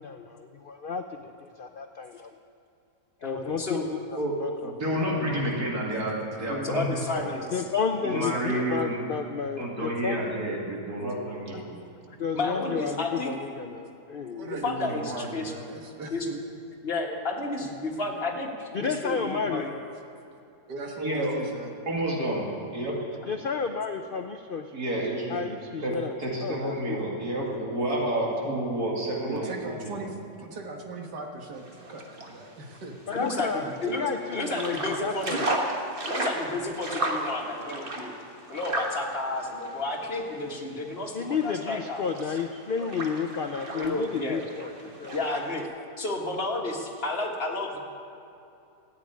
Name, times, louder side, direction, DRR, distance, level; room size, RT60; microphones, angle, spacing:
voice 1, 0.0-2.3 3.2-3.9 4.4-4.7 5.0-5.1 7.5-10.3 12.2-14.5 18.7-19.7 23.3-24.7 25.3-26.1 26.4-27.0 33.1-33.7 34.0-35.6 41.1-44.7 45.0-45.2, left 5 dB, 70° left, 6 dB, 0.5 m, -31 dB
voice 2, 3.2-3.9 4.6-4.7 6.5-7.6 8.0-8.6 11.7-13.3 14.4-15.5 16.1-16.3 16.8-19.7 33.1-34.0 34.3-35.6 36.1-38.1 38.5-42.4 43.7-44.4 45.1-45.7 46.0-47.8, left 2 dB, 35° left, 0 dB, 1.9 m, -32 dB
voice 3, 4.2-6.8 7.1-7.2 8.0-9.0 9.6-11.7 21.0-21.3 21.9-23.2 24.7-25.4 25.8-25.9 26.2-30.0, right 1 dB, 65° right, -3 dB, 2.8 m, -30 dB
voice 4, 14.3-16.4 20.7-21.7 29.3-33.0, right 3 dB, 85° right, 2 dB, 2.1 m, -38 dB
sound 1, 31.6-45.6, right 2 dB, 35° right, 1.5 m, -35 dB
14.5 x 8.7 x 9.5 m, 2.7 s
omnidirectional pair, 1.8 m